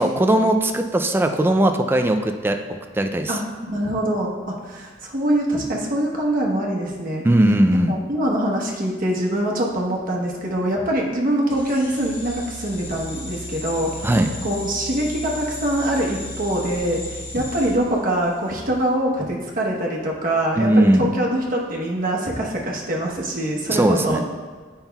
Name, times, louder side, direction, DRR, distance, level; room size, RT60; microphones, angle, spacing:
voice 1, 0.0-2.6 2.9-3.4 7.2-7.9 14.0-14.3 20.6-21.1 23.7-24.2, right 1 dB, 10° right, 5 dB, 0.3 m, -18 dB
voice 2, 3.3-7.2 7.9-13.9 14.4-24.2, right 1 dB, 50° right, -2 dB, 1.0 m, -24 dB
sound 1, 11.5-18.6, left 1 dB, 75° left, 1.4 m, -35 dB
8.9 x 5.5 x 2.3 m, 1.4 s
head